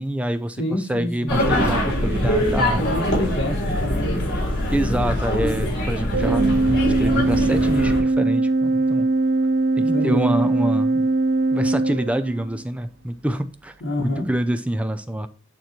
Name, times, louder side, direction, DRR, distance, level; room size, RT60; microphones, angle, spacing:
voice 1, 0.0-2.9 4.7-6.5 6.8-9.1 9.8-11.1 11.5-15.3, right 1 dB, 5° right, 10 dB, 0.4 m, -26 dB
voice 2, 0.6-1.4 2.7-4.2 9.9-10.3 13.8-14.3, left 1 dB, 75° left, -2 dB, 1.6 m, -27 dB
sound 1, 1.3-8.0, equal, 55° left, 3.6 m, -23 dB
Organ, 6.1-12.7, right 2 dB, 55° right, 0.6 m, -21 dB
9.1 x 3.1 x 4.3 m, 0.37 s
head